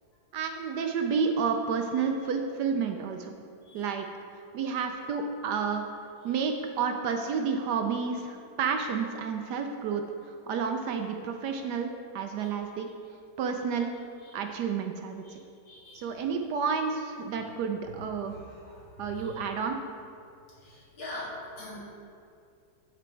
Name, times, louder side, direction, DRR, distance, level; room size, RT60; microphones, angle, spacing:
voice 1, 0.3-3.3 3.7-4.1 4.5-5.8 6.2-12.9 13.4-13.9 14.3-15.2 15.9-18.4 19.0-19.8, right 6 dB, 70° right, 4 dB, 1.0 m, -30 dB
voice 2, 15.7-16.1 17.8-17.9 18.2-19.4 20.6-21.8, left 1 dB, 80° left, -6 dB, 3.0 m, -43 dB
11.0 x 5.1 x 4.4 m, 2.5 s
omnidirectional pair, 2.1 m